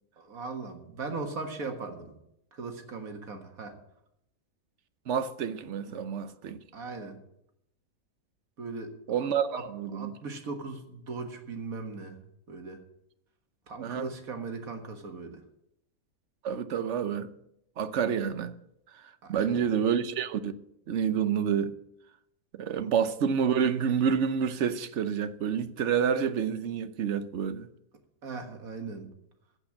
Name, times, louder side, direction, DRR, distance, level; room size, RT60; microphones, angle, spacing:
voice 1, 0.2-2.1 2.5-3.8 5.9-6.0 6.7-7.2 8.6-8.9 9.2-9.6 9.9-12.2 12.5-12.8 13.7-15.4 19.2-19.6 22.8-22.9 28.2-29.1, right 4 dB, 75° right, 2.0 m, -38 dB
voice 2, 5.1-6.6 9.1-10.1 13.8-14.1 16.4-17.3 17.8-18.5 18.9-19.0 19.3-20.6 20.9-21.8 22.5-27.7, right 7 dB, 60° right, 1.0 m, -28 dB
14.5 x 5.3 x 8.5 m
omnidirectional pair, 1.5 m